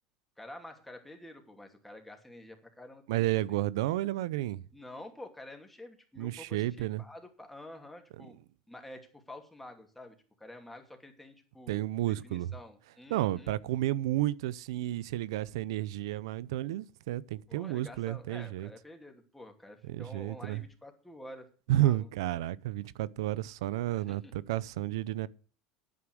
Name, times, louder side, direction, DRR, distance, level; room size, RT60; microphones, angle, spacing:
voice 1, 0.4-3.6 4.7-8.4 8.7-11.8 12.1-13.5 17.5-21.5 21.8-22.1 23.9-24.3, left 1 dB, 5° left, 2.6 m, -49 dB
voice 2, 3.1-4.6 6.2-7.0 11.7-12.5 13.1-18.7 19.9-20.6 21.7-25.3, right 15 dB, 90° right, 0.5 m, -31 dB
9.7 x 9.4 x 6.3 m
supercardioid pair, 125°, 3 cm